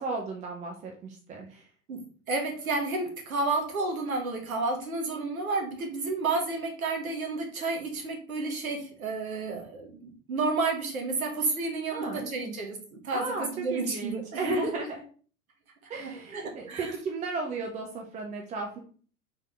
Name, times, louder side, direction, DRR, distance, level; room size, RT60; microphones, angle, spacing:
voice 1, 0.0-1.7 11.9-12.5 13.1-15.0 15.9-18.8, right 3 dB, 15° right, 1 dB, 0.6 m, -35 dB
voice 2, 2.3-12.8 13.0-13.3 13.5-14.7 16.0-16.4 16.7-16.9, right 3 dB, 75° right, 2 dB, 1.3 m, -31 dB
4.0 x 3.6 x 3.4 m, 0.43 s
figure-of-eight pair, 85°, 42 cm